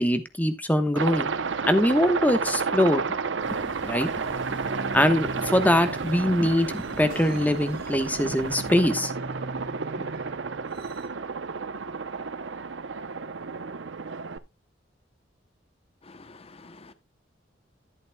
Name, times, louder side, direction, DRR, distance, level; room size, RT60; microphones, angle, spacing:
voice 1, 0.0-1.3 1.7-3.0 3.5-4.1 4.9-9.1, left 1 dB, 10° left, 1.1 m, -23 dB
Aircraft, 1.0-14.4, right 5 dB, 75° right, 0.7 m, -31 dB
sound 1, 3.4-8.9, left 1 dB, 90° left, 4.7 m, -46 dB
sound 2, 4.2-11.1, right 1 dB, 55° right, 2.0 m, -40 dB
voice 2, 16.0-16.9, left 3 dB, 30° left, 0.8 m, -49 dB
11.5 x 10.5 x 2.2 m
head